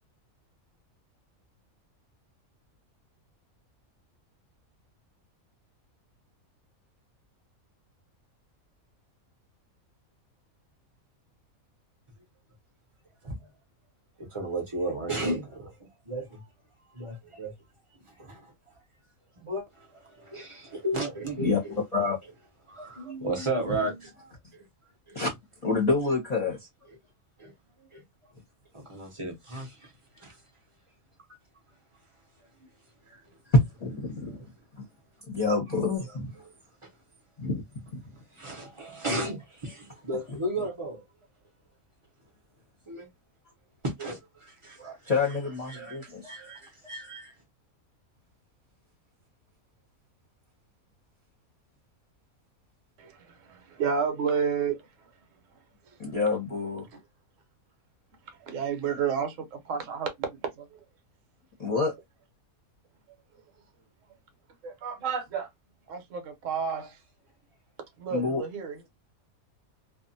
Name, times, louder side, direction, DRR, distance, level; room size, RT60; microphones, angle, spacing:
voice 1, 14.2-16.4 16.9-17.5 18.1-18.8 19.4-21.8 22.7-24.1 24.5-24.6 25.1-25.2 27.4-27.5 27.8-28.0 28.7-30.4 33.1-33.2 34.3-34.4 36.0-36.5 36.8-36.9 38.3-41.0 42.9-43.1 43.8-45.3 45.7-47.3 66.6-66.9, right 1 dB, 30° right, 0.6 m, -35 dB
voice 2, 25.6-26.6 33.8-34.4 35.3-36.3 37.4-37.6 37.9-38.0 45.1-46.3 56.0-56.9 61.6-61.9 68.1-68.4, left 4 dB, 35° left, 0.8 m, -27 dB
voice 3, 53.5-54.8 58.4-60.8 64.6-65.5 65.9-67.0 68.0-68.8, right 6 dB, 70° right, 1.1 m, -30 dB
2.5 x 2.3 x 2.5 m
omnidirectional pair, 1.5 m